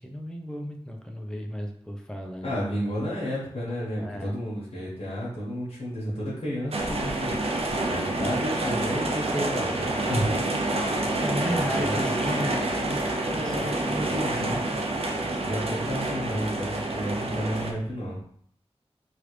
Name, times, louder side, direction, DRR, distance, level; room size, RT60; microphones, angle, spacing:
voice 1, 0.0-2.6 4.0-4.4 11.2-13.0 13.3-14.1 15.4-15.5 16.3-16.5, equal, 5° left, 2 dB, 0.6 m, -34 dB
voice 2, 2.4-7.4 7.9-10.4 11.3-12.0 13.2-14.6 15.4-18.2, equal, 65° left, -7 dB, 1.3 m, -32 dB
sound 1, 6.7-17.7, right 2 dB, 65° right, 0.5 m, -28 dB
3.2 x 2.5 x 3.2 m, 0.62 s
wide cardioid pair, 70°, 11 cm